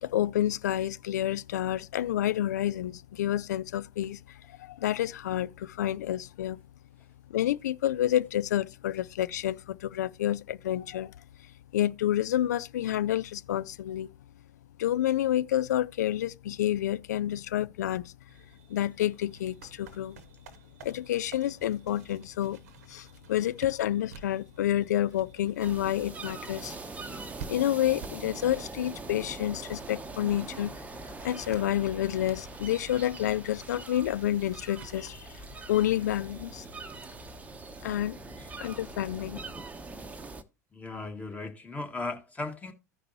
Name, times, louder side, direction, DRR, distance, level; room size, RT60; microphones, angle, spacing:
voice 1, 0.0-6.6 7.3-11.1 11.7-14.1 14.8-18.1 18.7-20.2 20.8-22.6 22.9-26.8 27.5-30.9 31.2-35.4 35.7-36.6 37.8-38.2 38.6-39.4, left 12 dB, 75° left, 0.4 m, -29 dB
sound 1, 18.3-37.1, right 6 dB, 70° right, 0.9 m, -53 dB
sound 2, 25.6-40.4, right 3 dB, 15° right, 0.8 m, -43 dB
voice 2, 40.7-42.7, left 3 dB, 15° left, 1.7 m, -37 dB
15.0 x 5.1 x 2.8 m
figure-of-eight pair, 80°, 9 cm